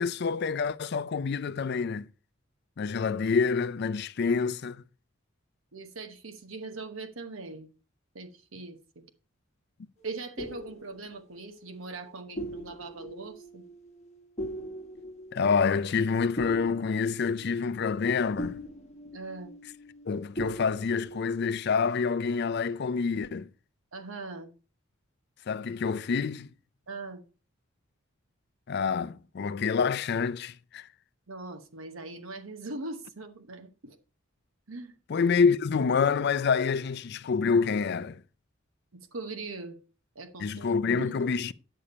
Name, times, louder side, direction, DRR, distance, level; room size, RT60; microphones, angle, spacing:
voice 1, 0.0-2.1 2.8-4.8 15.3-18.6 20.1-23.5 25.5-26.5 28.7-30.9 35.1-38.2 40.4-41.5, left 5 dB, 55° left, 0.4 m, -27 dB
voice 2, 5.7-7.7 8.1-9.1 10.0-13.6 19.1-19.5 23.9-24.5 26.9-27.2 31.3-34.0 34.7-34.9 38.9-39.8 40.1-41.3, right 3 dB, 80° right, 1.1 m, -41 dB
sound 1, 10.0-20.1 20.4-21.2, equal, 35° left, 1.3 m, -41 dB
10.0 x 6.8 x 4.2 m
head